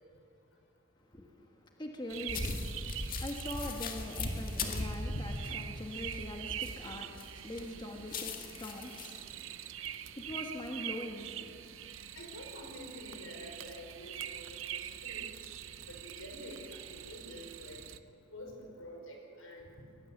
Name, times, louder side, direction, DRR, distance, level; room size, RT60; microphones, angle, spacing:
voice 1, 1.1-11.5, left 1 dB, 20° left, 2 dB, 1.5 m, -43 dB
sound 1, 2.1-18.0, right 10 dB, 75° right, 0.8 m, -44 dB
sound 2, 2.3-7.2 7.6-9.2, left 2 dB, 45° left, 1.9 m, -38 dB
voice 2, 12.2-15.3 15.9-17.8 18.3-19.7, left 1 dB, 85° left, 2 dB, 5.6 m, -48 dB
20.5 x 20.0 x 8.1 m, 2.7 s
head